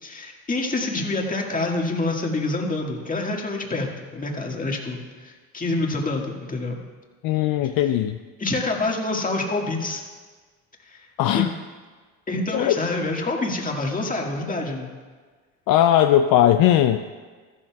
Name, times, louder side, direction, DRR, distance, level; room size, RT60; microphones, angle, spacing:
voice 1, 0.0-6.7 7.6-7.7 8.4-10.0 10.9-11.1 11.3-11.5 12.3-14.9, left 2 dB, 20° left, 0 dB, 1.9 m, -27 dB
voice 2, 7.2-8.2 11.2-11.5 12.5-12.8 15.7-17.0, left 11 dB, 60° left, 8 dB, 0.5 m, -18 dB
14.0 x 12.0 x 2.3 m, 1.5 s
supercardioid pair, 80°, 39 cm